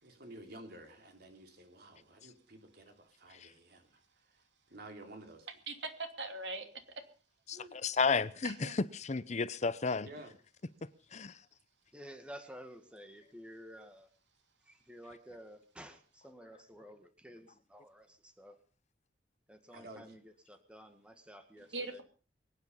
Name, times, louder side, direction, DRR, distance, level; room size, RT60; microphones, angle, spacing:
voice 1, 0.0-4.4 4.7-5.5 8.6-8.7 10.0-10.3 19.7-20.2, right 1 dB, 60° right, 3.3 m, -52 dB
voice 2, 5.7-6.7 7.5-7.8 8.4-8.8 21.7-22.0, right 3 dB, 75° right, 2.8 m, -41 dB
voice 3, 7.5-10.1 11.1-11.4, left 4 dB, 40° left, 0.7 m, -33 dB
voice 4, 11.9-14.1 14.7-18.6 19.5-22.0, equal, 5° right, 1.9 m, -52 dB
23.5 x 9.7 x 5.5 m
head